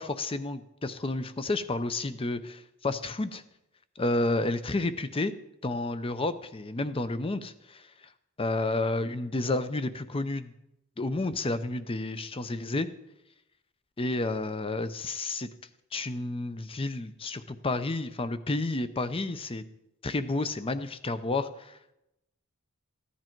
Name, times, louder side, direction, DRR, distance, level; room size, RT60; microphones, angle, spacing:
voice 1, 0.0-3.4 4.0-5.3 5.6-7.9 8.4-10.5 11.0-12.9 14.0-15.5 15.9-19.6 20.0-21.8, left 2 dB, 25° left, 12 dB, 0.6 m, -31 dB
15.0 x 10.0 x 4.5 m, 0.89 s
head